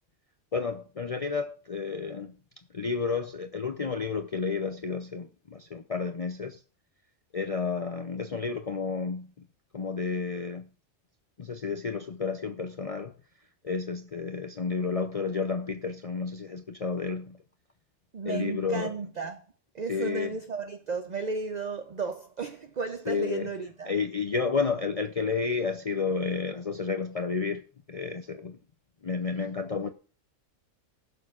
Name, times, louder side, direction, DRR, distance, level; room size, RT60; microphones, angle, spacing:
voice 1, 0.5-2.3 2.7-6.6 7.3-9.5 9.7-10.7 11.4-13.1 13.6-17.4 18.3-18.9 19.9-20.3 23.1-23.5 23.9-28.6 29.0-29.9, left 5 dB, 45° left, 0.5 m, -31 dB
voice 2, 18.1-19.5 19.7-23.9, right 4 dB, 45° right, 0.6 m, -34 dB
16.5 x 6.7 x 2.4 m
omnidirectional pair, 1.3 m